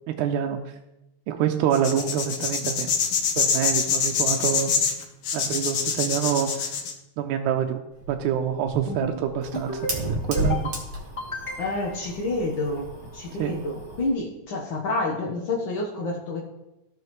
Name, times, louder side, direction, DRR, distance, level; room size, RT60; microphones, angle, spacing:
voice 1, 0.1-0.6 1.3-2.9 3.4-4.8 5.3-6.8 7.2-7.8 8.1-10.7 13.4-13.6, right 9 dB, 80° right, 4 dB, 1.9 m, -26 dB
sound 1, 1.7-6.9, left 6 dB, 65° left, 1.7 m, -25 dB
Fire, 7.9-14.1, right 1 dB, 45° right, 1.7 m, -33 dB
sound 2, 8.7-9.2 9.5-10.0 10.3-10.8 11.2-11.9, left 1 dB, 10° left, 1.7 m, -32 dB
voice 2, 11.6-16.4, left 2 dB, 80° left, -2 dB, 1.1 m, -29 dB
14.5 x 5.6 x 3.0 m, 0.95 s
omnidirectional pair, 3.7 m